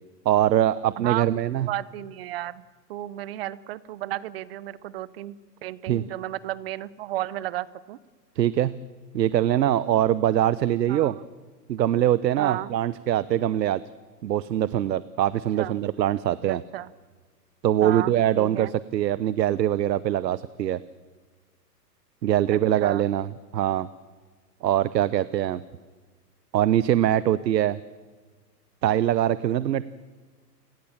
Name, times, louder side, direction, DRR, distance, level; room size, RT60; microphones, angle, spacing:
voice 1, 0.2-1.7 5.9-6.0 8.4-8.8 9.1-11.2 11.7-13.8 14.2-16.6 17.6-20.8 22.2-23.3 23.5-23.9 24.6-25.6 26.5-27.8 28.8-29.8, right 12 dB, 90° right, 17 dB, 0.9 m, -23 dB
voice 2, 1.0-2.6 2.9-5.4 5.6-8.0 10.9-11.2 12.4-12.7 15.6-15.8 16.5-16.9 17.8-18.7 22.5-23.0, right 14 dB, 40° right, 20 dB, 0.8 m, -33 dB
30.0 x 18.0 x 7.3 m, 1.4 s
hypercardioid pair, 155°, 49 cm